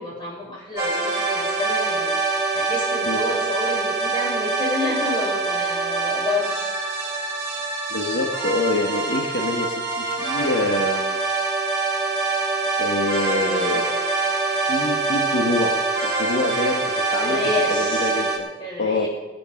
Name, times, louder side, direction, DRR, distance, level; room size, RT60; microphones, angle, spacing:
voice 1, 0.0-6.8 13.4-13.9 17.2-18.1 18.6-19.1, left 2 dB, 25° left, -4 dB, 6.7 m, -29 dB
sound 1, 0.8-18.4, right 3 dB, 15° right, 4.6 m, -24 dB
voice 2, 7.9-11.2 12.8-13.9 14.5-17.4 17.8-18.5 18.8-19.1, left 2 dB, 85° left, 2 dB, 1.5 m, -26 dB
24.0 x 8.6 x 5.9 m, 1.2 s
head